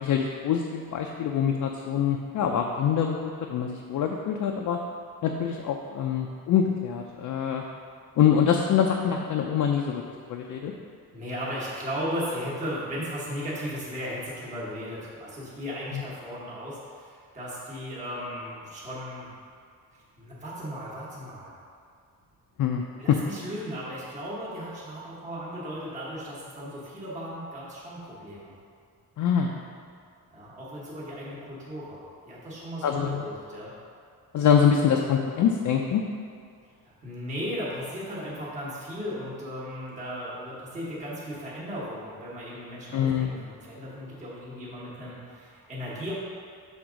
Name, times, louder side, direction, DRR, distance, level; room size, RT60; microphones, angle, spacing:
voice 1, 0.0-4.8 5.2-7.6 8.2-10.0 10.3-10.7 15.9-16.0 22.6-22.8 23.1-23.2 29.2-29.6 32.8-33.3 34.3-36.0 42.9-43.4, left 8 dB, 60° left, 1 dB, 0.4 m, -24 dB
voice 2, 11.1-19.3 19.9-21.5 23.0-28.5 30.3-33.7 37.0-46.1, equal, 20° right, -8 dB, 1.1 m, -36 dB
6.2 x 3.5 x 5.0 m, 2.3 s
wide cardioid pair, 175°, 35 cm